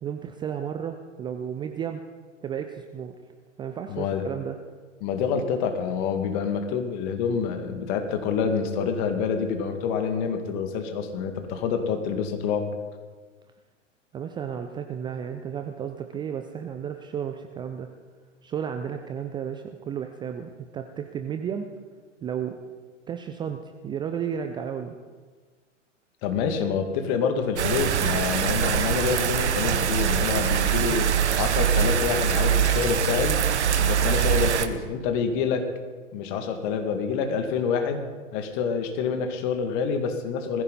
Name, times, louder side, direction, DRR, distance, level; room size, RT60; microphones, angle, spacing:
voice 1, 0.0-2.0 2.4-3.1 3.6-4.6 14.1-17.9 18.4-21.7 22.2-22.6 23.1-24.9, right 8 dB, 10° right, 6 dB, 0.5 m, -33 dB
voice 2, 3.9-4.2 5.0-12.7 26.2-31.1 31.4-33.4 33.8-35.7 36.1-38.0 38.3-40.6, left 6 dB, 40° left, 6 dB, 2.2 m, -27 dB
sound 1, 27.6-34.7, right 8 dB, 65° right, 1.2 m, -23 dB
20.5 x 15.0 x 4.1 m, 1.4 s
figure-of-eight pair, 105°, 37 cm